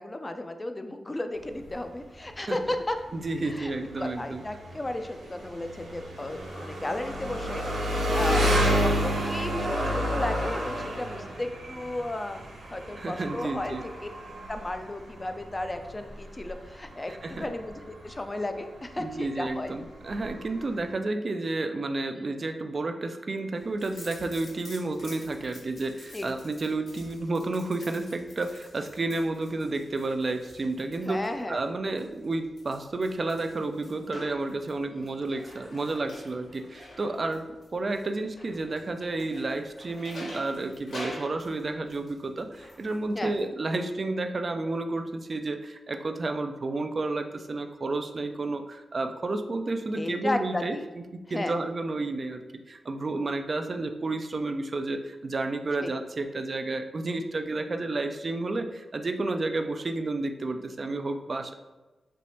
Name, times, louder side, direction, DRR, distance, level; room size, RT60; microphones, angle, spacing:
voice 1, 0.0-3.0 3.4-3.7 4.0-7.6 8.0-14.1 14.5-19.7 22.1-22.3 26.1-26.2 31.0-31.6 34.9-35.2 43.1-43.3 49.9-50.8 51.3-51.6 55.8-55.9, left 1 dB, 30° left, 7 dB, 0.4 m, -34 dB
Engine, 1.4-20.9, equal, 85° right, 0.7 m, -31 dB
voice 2, 3.1-4.4 13.0-13.8 17.1-17.5 19.0-37.4 37.7-51.0 51.3-61.5, right 2 dB, 50° right, 6 dB, 0.3 m, -31 dB
sound 1, 23.5-43.4, left 1 dB, 75° left, 0.9 m, -48 dB
3.3 x 2.9 x 2.7 m, 1.1 s
supercardioid pair, 40°, 0 cm